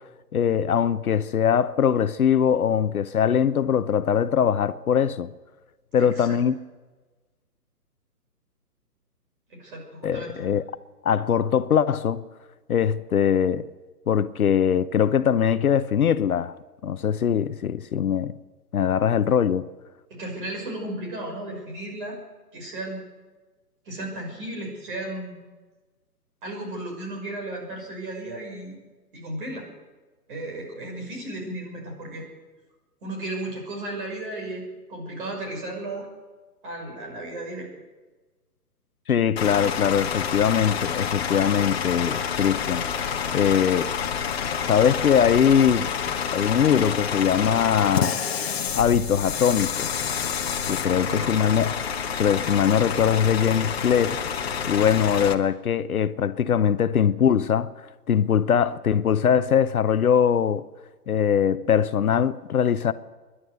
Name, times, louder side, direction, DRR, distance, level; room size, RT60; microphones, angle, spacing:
voice 1, 0.3-5.3 5.9-6.6 10.0-10.6 11.0-12.2 12.7-13.6 14.1-16.6 16.8-18.3 18.7-19.7 39.1-42.9 43.3-43.9 44.7-45.9 46.3-48.2 48.7-49.9 50.7-51.7 52.2-54.2 54.7-57.7 58.1-60.7 61.1-62.9, left 8 dB, 65° left, 0.9 m, -21 dB
voice 2, 6.0-6.4 9.5-10.4 20.1-22.2 22.5-23.0 23.8-25.4 26.4-28.8 29.1-29.7 30.3-32.3 33.0-36.1 36.6-37.7 51.0-51.5, right 1 dB, 30° right, 6.1 m, -34 dB
Bus / Idling, 39.4-55.3, left 7 dB, 40° left, 1.3 m, -28 dB
28.5 x 11.5 x 8.0 m
hypercardioid pair, 165°, 47 cm